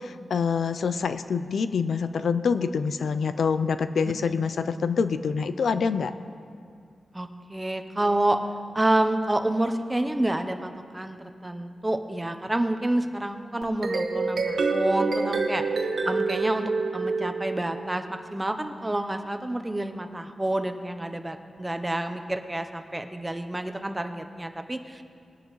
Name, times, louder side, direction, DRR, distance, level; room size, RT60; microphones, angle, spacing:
voice 1, 0.0-6.1, left 5 dB, 85° left, 11 dB, 0.4 m, -26 dB
voice 2, 7.1-8.4 8.7-15.6 16.0-25.0, right 1 dB, 15° right, 7 dB, 0.8 m, -28 dB
sound 1, 13.6-18.0, right 4 dB, 75° right, 1.3 m, -27 dB
20.5 x 10.5 x 3.1 m, 2.3 s
wide cardioid pair, 95°, 0 cm